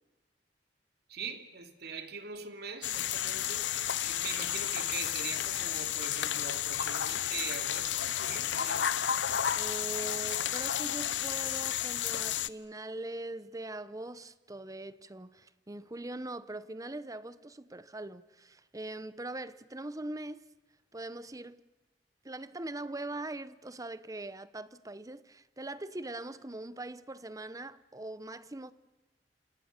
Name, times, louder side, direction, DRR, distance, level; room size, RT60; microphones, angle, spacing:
voice 1, 1.1-8.9, right 5 dB, 60° right, 2.8 m, -42 dB
sound 1, 2.8-12.5, left 10 dB, 80° left, 0.8 m, -32 dB
voice 2, 9.6-20.4 20.9-21.6 22.2-28.7, right 2 dB, 20° right, 0.9 m, -41 dB
28.5 x 28.0 x 6.7 m
head